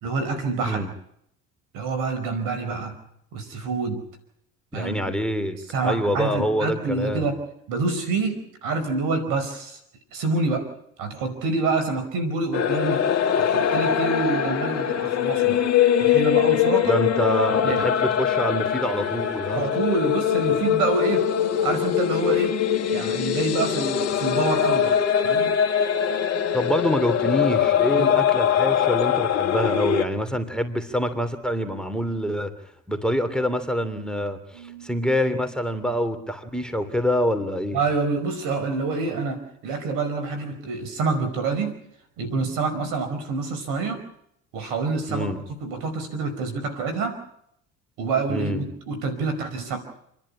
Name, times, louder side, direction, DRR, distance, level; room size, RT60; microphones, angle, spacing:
voice 1, 0.0-0.9 1.7-3.0 3.3-4.1 4.7-5.0 5.7-7.4 7.7-9.8 10.1-10.7 11.0-13.1 13.4-15.6 16.0-17.0 17.6-17.9 19.5-21.3 21.6-22.6 22.9-25.0 25.2-25.6 27.9-28.1 34.5-34.9 37.7-41.8 42.2-44.1 44.5-45.3 45.6-47.2 48.0-49.8, right 3 dB, 75° right, 9 dB, 5.2 m, -27 dB
voice 2, 4.7-7.3 16.8-19.6 26.5-32.5 32.9-37.8 45.1-45.4 48.3-48.7, equal, ahead, 7 dB, 2.9 m, -26 dB
sound 1, 12.5-30.0, left 9 dB, 50° left, 2.2 m, -22 dB
29.0 x 11.0 x 9.9 m, 0.74 s
supercardioid pair, 75°, 32 cm